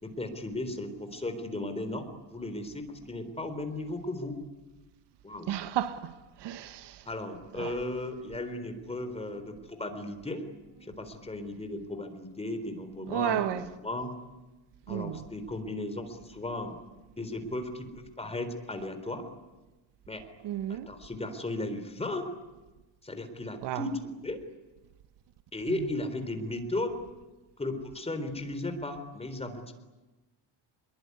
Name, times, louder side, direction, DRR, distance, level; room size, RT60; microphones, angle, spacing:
voice 1, 0.0-4.4 5.2-5.5 7.1-10.4 10.9-14.1 14.9-16.7 17.2-19.3 20.1-20.2 20.7-22.2 23.0-24.4 25.5-27.0 27.6-29.7, left 2 dB, 15° left, 3.9 m, -36 dB
voice 2, 5.5-7.1 7.6-7.7 13.1-13.7 14.9-15.2 20.4-20.9 23.6-23.8 25.7-25.8, right 11 dB, 70° right, 1.4 m, -33 dB
25.5 x 22.5 x 9.8 m
cardioid pair, 120°, 44 cm